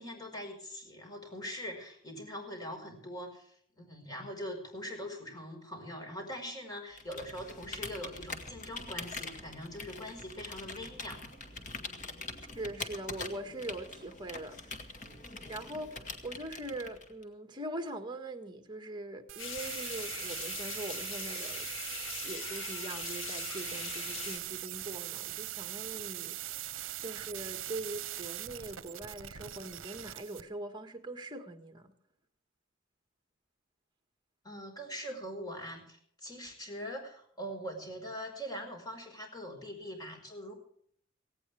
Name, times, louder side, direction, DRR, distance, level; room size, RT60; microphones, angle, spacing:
voice 1, 0.0-11.2 27.0-27.2 34.4-40.5, equal, 20° left, 5.2 m, -42 dB
Computer keyboard, 6.9-17.2, left 3 dB, 40° left, 1.9 m, -44 dB
voice 2, 12.5-14.8 15.5-21.7 22.2-31.9, right 1 dB, 20° right, 1.7 m, -42 dB
sound 1, 19.3-30.4, right 14 dB, 70° right, 0.8 m, -41 dB
sound 2, 19.4-24.4, left 6 dB, 80° left, 2.1 m, -41 dB
17.5 x 17.0 x 3.5 m
head